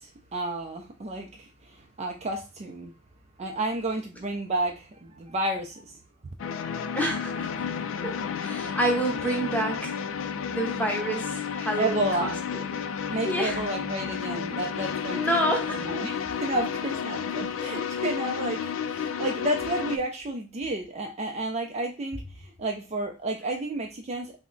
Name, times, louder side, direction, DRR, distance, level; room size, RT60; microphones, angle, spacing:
voice 1, 0.0-2.9 3.4-5.9 9.6-9.7 11.8-12.4 13.1-24.3, right 2 dB, 35° right, 3 dB, 0.4 m, -31 dB
sound 1, 6.4-20.0, left 7 dB, 90° left, 0.4 m, -32 dB
voice 2, 6.9-7.5 8.0-8.1 8.4-10.0 10.5-12.7 13.2-13.6 15.1-15.8, right 1 dB, 10° left, 1 dB, 0.8 m, -28 dB
3.4 x 2.1 x 3.7 m, 0.31 s
head